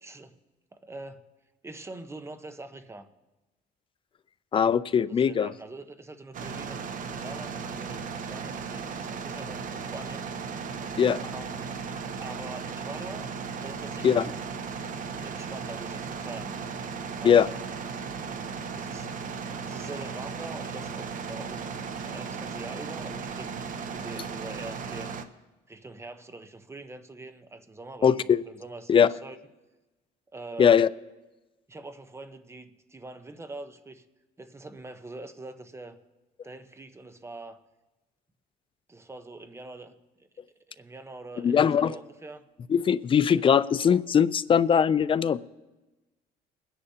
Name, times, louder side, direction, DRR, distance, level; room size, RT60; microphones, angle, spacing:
voice 1, 0.0-0.4 0.7-1.2 1.6-3.1 5.1-10.2 11.3-11.9 12.2-13.3 13.6-14.2 15.1-16.6 17.2-17.6 18.7-19.3 19.7-21.6 21.9-25.2 25.7-29.4 30.3-30.7 31.7-34.0 34.4-36.0 36.4-37.6 38.9-40.0 40.7-42.5 43.4-43.6, right 2 dB, 15° right, 8 dB, 0.9 m, -44 dB
voice 2, 4.5-5.5 11.0-11.2 14.0-14.3 17.2-17.5 28.0-28.4 28.9-29.1 30.6-30.9 41.4-41.9 42.7-45.4, left 7 dB, 30° left, 17 dB, 0.4 m, -21 dB
sound 1, 6.3-25.2, right 5 dB, 50° right, 0.9 m, -36 dB
22.5 x 10.0 x 2.8 m, 1.1 s
cardioid pair, 110°, 17 cm